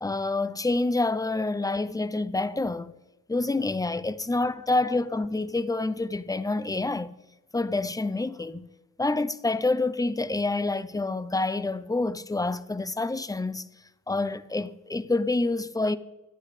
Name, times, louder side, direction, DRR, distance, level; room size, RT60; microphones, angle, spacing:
voice 1, 0.0-2.9 3.3-7.1 7.5-8.7 9.0-13.6 14.1-16.0, left 2 dB, 10° left, 0.6 m, -27 dB
23.5 x 9.6 x 3.3 m
wide cardioid pair, 95°, 31 cm